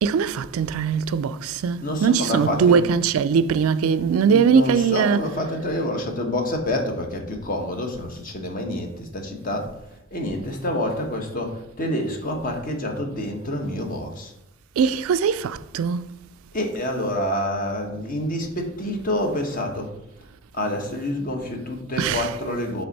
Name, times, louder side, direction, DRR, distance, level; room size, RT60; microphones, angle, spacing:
voice 1, 0.0-5.2 14.8-16.1 22.0-22.2, right 6 dB, 75° right, 0.3 m, -21 dB
voice 2, 1.8-2.8 4.2-9.7 10.1-14.3 16.5-19.9 20.5-22.9, left 1 dB, 40° left, 1.0 m, -27 dB
7.8 x 3.4 x 4.0 m
head